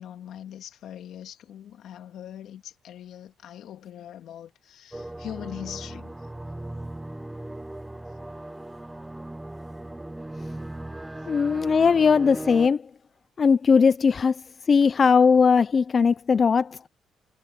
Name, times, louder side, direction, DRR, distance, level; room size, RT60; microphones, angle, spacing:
voice 1, 0.0-6.2, left 10 dB, 75° left, 2.8 m, -41 dB
sound 1, 4.9-12.7, right 1 dB, 10° right, 0.9 m, -38 dB
voice 2, 11.3-12.8 13.4-14.4 14.7-16.8, left 5 dB, 40° left, 0.5 m, -19 dB
cardioid pair, 90°, 0 cm